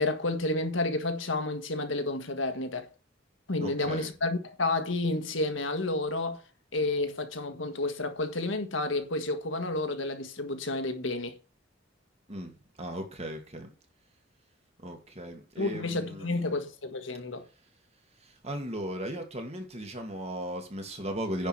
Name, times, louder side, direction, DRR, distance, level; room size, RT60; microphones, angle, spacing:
voice 1, 0.0-2.9 3.5-6.4 6.7-11.4 15.6-17.4, left 2 dB, 80° left, 1.6 m, -30 dB
voice 2, 3.6-4.1 12.3-13.7 14.8-16.6 18.2-21.5, right 1 dB, 35° right, 2.4 m, -37 dB
10.0 x 5.0 x 6.2 m
head